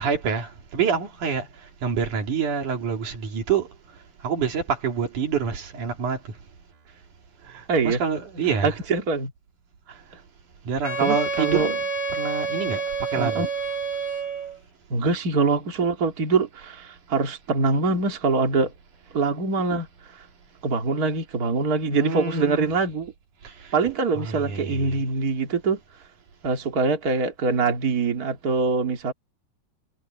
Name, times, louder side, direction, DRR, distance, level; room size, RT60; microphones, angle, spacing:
voice 1, 0.0-1.5 1.8-3.7 4.2-6.3 7.5-8.8 10.7-11.8 12.1-13.5 21.9-22.7 23.4-23.5 24.2-25.0, right 6 dB, 80° right, 4.3 m, -27 dB
voice 2, 7.7-8.0 8.6-9.3 11.0-11.7 13.1-13.5 14.9-18.7 19.1-19.9 20.6-23.1 23.7-25.8 26.4-29.1, right 4 dB, 30° right, 2.9 m, -24 dB
Wind instrument woodwind instrument, 10.8-14.6, right 4 dB, 15° left, 1.4 m, -28 dB
omnidirectional pair, 3.5 m